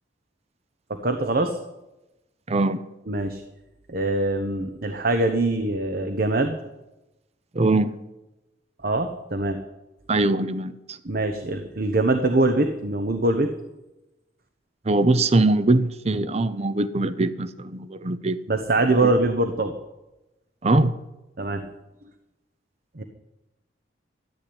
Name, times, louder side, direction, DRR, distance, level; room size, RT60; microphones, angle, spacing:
voice 1, 0.9-1.6 3.1-3.4 3.9-6.6 8.8-9.6 11.0-13.5 18.5-19.7 21.4-21.7 23.0-23.1, right 2 dB, 50° right, 7 dB, 1.1 m, -23 dB
voice 2, 2.5-2.8 7.5-8.0 10.1-11.0 14.9-18.4 18.9-19.1 20.6-20.9, right 2 dB, 35° right, 14 dB, 0.6 m, -22 dB
13.5 x 9.9 x 8.8 m, 0.97 s
head